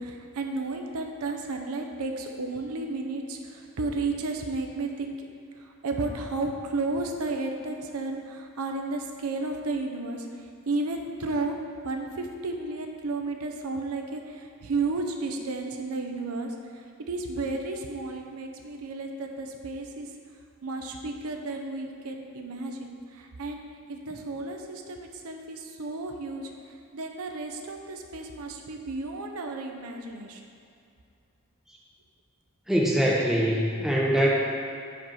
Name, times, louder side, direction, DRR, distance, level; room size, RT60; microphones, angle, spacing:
voice 1, 0.0-5.2 5.6-10.3 10.7-11.6 11.8-20.1 20.6-26.5 26.9-30.4, right 3 dB, 80° right, 3 dB, 0.6 m, -33 dB
voice 2, 32.7-34.3, equal, ahead, -4 dB, 0.5 m, -23 dB
5.1 x 4.5 x 5.5 m, 2.5 s
head